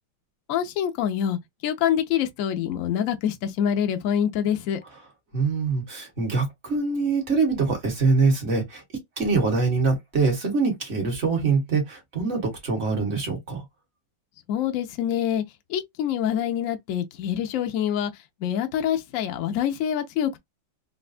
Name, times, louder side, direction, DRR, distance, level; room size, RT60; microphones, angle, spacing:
voice 1, 0.5-4.8 14.5-15.4 15.7-18.1 18.4-20.4, left 9 dB, 85° left, 0.7 m, -26 dB
voice 2, 5.3-8.8 9.2-13.6, right 4 dB, 35° right, 1.5 m, -24 dB
4.0 x 2.2 x 2.4 m
omnidirectional pair, 2.1 m